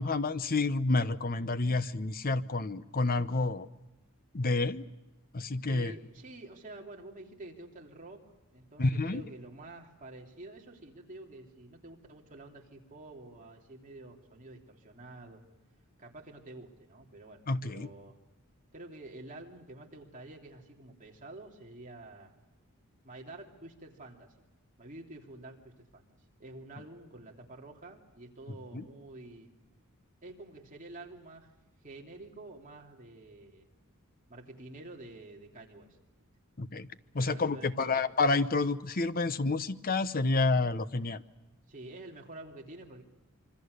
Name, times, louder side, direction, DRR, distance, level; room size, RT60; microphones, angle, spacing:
voice 1, 0.0-3.7 4.3-4.8 5.3-5.9 8.8-9.2 17.5-17.9 28.7-28.9 36.6-36.9 37.1-41.2, left 3 dB, 40° left, 13 dB, 0.9 m, -29 dB
voice 2, 5.7-8.2 8.5-15.4 16.0-18.2 18.7-22.3 23.0-24.3 24.8-26.1 26.4-29.5 30.2-31.5 31.8-33.7 34.3-36.0 37.2-38.1 41.7-43.0, right 2 dB, 35° right, 0 dB, 3.1 m, -48 dB
26.0 x 24.5 x 6.7 m, 0.99 s
head